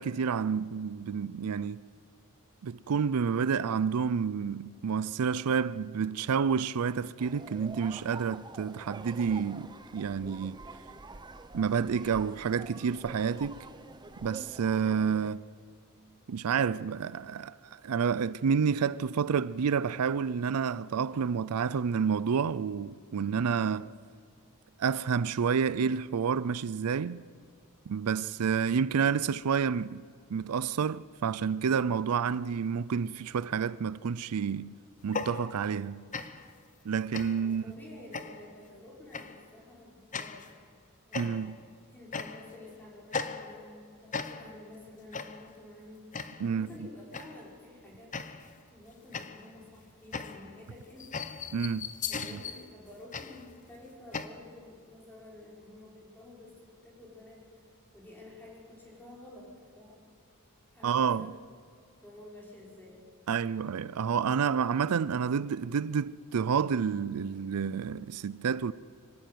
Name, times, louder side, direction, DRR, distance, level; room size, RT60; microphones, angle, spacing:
voice 1, 0.0-1.8 2.6-10.6 11.5-13.7 14.2-15.4 16.3-23.9 24.8-27.2 27.9-30.0 30.3-34.7 35.0-36.1 36.9-37.6 41.1-41.6 46.4-46.7 51.5-51.9 60.8-61.3 63.3-68.7, right 6 dB, 75° right, 0.4 m, -29 dB
sound 1, 7.2-15.3, right 3 dB, 20° right, 0.8 m, -47 dB
sound 2, 35.0-35.8 36.1-36.5 37.1-37.6 38.1-38.6 39.1-39.4 40.1-40.5 41.1-41.6 42.1-42.6 43.1-43.8 44.1-44.7 45.1-45.5 46.1-46.5 47.1-47.5 48.1-48.6 49.1-54.3, left 5 dB, 35° left, 0.9 m, -38 dB
voice 2, 37.3-40.6 41.1-41.5 41.9-48.1 48.7-51.2 52.1-57.5 57.9-60.0 60.7-61.3 62.0-63.1, left 2 dB, 10° left, 5.5 m, -50 dB
24.5 x 13.5 x 9.4 m
head